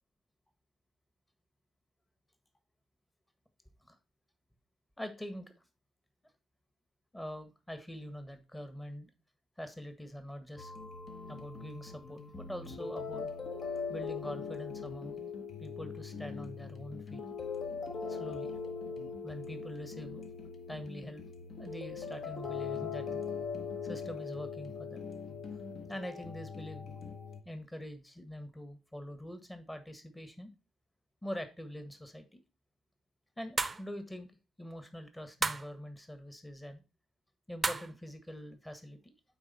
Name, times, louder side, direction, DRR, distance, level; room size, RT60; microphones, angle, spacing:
voice 1, 5.0-5.5 7.1-9.1 9.6-10.7 11.3-13.3 13.9-15.2 15.6-17.2 18.1-18.5 19.2-20.2 20.7-21.2 21.6-23.2 23.8-25.1 25.9-26.9 27.4-30.5 31.2-32.4 33.4-34.3 34.6-36.8 37.5-39.1, equal, 10° left, 8 dB, 1.5 m, -44 dB
sound 1, 10.6-27.4, left 5 dB, 50° left, 1.3 m, -41 dB
sound 2, 33.6-33.9 35.4-35.7 37.6-38.0, right 3 dB, 30° right, 0.6 m, -32 dB
8.8 x 4.1 x 4.3 m, 0.30 s
hypercardioid pair, 50°, 0 cm